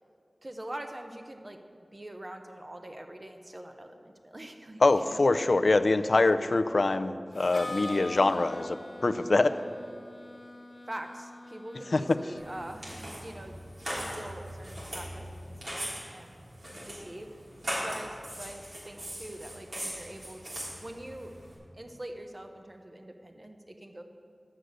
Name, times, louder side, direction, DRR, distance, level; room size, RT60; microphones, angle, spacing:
voice 1, 0.4-1.6 1.9-5.2 10.9-13.6 13.9-16.3 16.9-17.3 17.8-20.4 20.8-21.3 21.7-24.0, right 1 dB, 35° right, 5 dB, 1.0 m, -44 dB
voice 2, 4.8-9.6 11.9-12.0, left 2 dB, 65° left, 10 dB, 0.4 m, -24 dB
Harmonica, 7.3-13.1, left 2 dB, 40° left, 0.8 m, -44 dB
sound 1, 12.4-21.5, equal, 75° right, 3.3 m, -40 dB
11.5 x 6.6 x 7.9 m, 2.3 s
wide cardioid pair, 55°, 0 cm